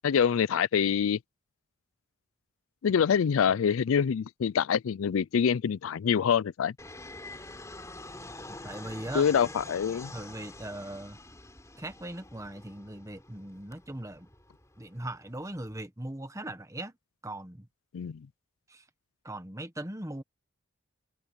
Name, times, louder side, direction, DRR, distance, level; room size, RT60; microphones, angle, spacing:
voice 1, 0.0-1.2 2.8-6.7 9.1-10.1 17.9-18.2, left 7 dB, 80° left, 0.4 m, -25 dB
Fixed-wing aircraft airplane, 6.8-15.8, left 2 dB, 15° left, 3.4 m, -46 dB
voice 2, 8.6-9.3 10.1-11.2 11.8-14.3 14.8-16.9 17.2-17.7 18.7-18.8 19.2-20.2, right 1 dB, 15° right, 1.3 m, -39 dB
head